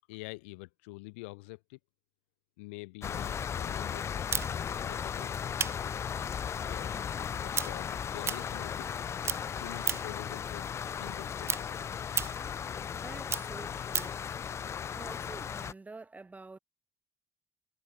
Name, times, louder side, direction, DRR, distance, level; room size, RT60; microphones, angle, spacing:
voice 1, 0.1-1.8 2.6-4.1 4.7-5.5 6.6-7.0 7.4-9.0 9.5-11.8, left 26 dB, 90° left, 2.6 m, -46 dB
sound 1, 3.0-15.7, left 8 dB, 45° left, 0.5 m, -36 dB
sound 2, 4.3-9.0 9.2-10.2 10.6-14.2, right 6 dB, 40° right, 0.7 m, -36 dB
voice 2, 12.9-14.1 14.9-16.6, right 3 dB, 25° right, 4.1 m, -48 dB
hypercardioid pair, 60°, 6 cm